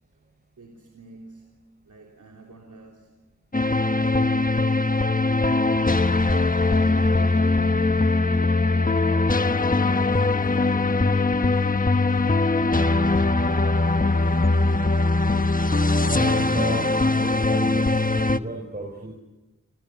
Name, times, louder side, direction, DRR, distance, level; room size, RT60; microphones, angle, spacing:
voice 1, 0.6-3.2 3.8-5.2 5.5-7.9 8.2-8.8 9.2-9.3 9.8-13.0, right 3 dB, 90° right, 3.5 m, -47 dB
sound 1, 3.5-18.4, left 3 dB, 30° left, 1.2 m, -21 dB
voice 2, 16.0-17.9 18.1-19.1, right 1 dB, 35° right, 6.5 m, -33 dB
30.0 x 28.5 x 6.8 m
wide cardioid pair, 55°, 30 cm